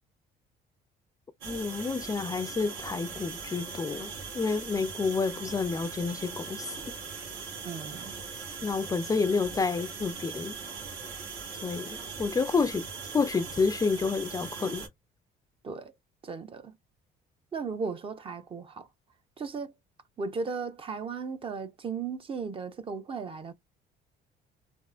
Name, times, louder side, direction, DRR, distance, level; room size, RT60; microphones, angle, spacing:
voice 1, 1.4-4.1 4.3-7.0 8.6-10.6 11.6-12.9 13.1-14.9, left 4 dB, 20° left, 0.3 m, -29 dB
sound 1, 1.4-14.9, right 5 dB, 85° right, 1.4 m, -40 dB
voice 2, 7.6-8.2 15.6-15.9 16.2-16.7 17.5-18.9 19.4-19.7 20.2-23.5, right 5 dB, 30° right, 0.5 m, -36 dB
3.6 x 2.4 x 2.3 m
cardioid pair, 110°, 17 cm